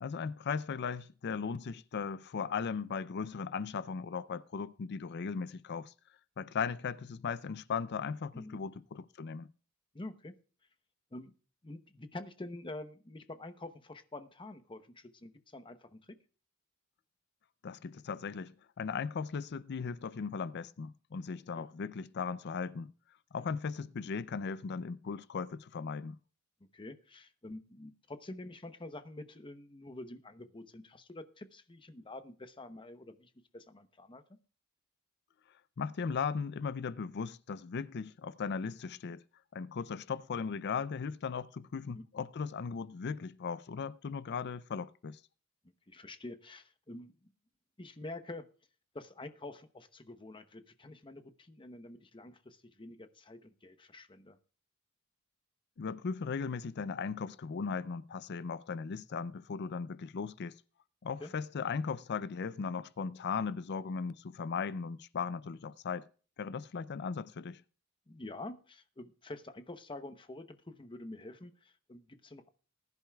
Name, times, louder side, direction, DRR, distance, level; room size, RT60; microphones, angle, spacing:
voice 1, 0.0-5.9 6.4-9.5 17.6-22.9 23.3-26.2 35.8-39.2 39.5-45.2 55.8-60.6 61.0-66.1 66.4-67.6, left 5 dB, 50° left, 0.4 m, -37 dB
voice 2, 9.9-10.3 11.1-11.3 11.6-16.1 21.6-21.7 26.7-34.2 41.9-42.0 45.9-47.1 47.8-48.5 48.9-54.4 61.2-61.3 68.1-72.5, left 2 dB, 25° left, 0.8 m, -47 dB
20.0 x 10.5 x 2.3 m
head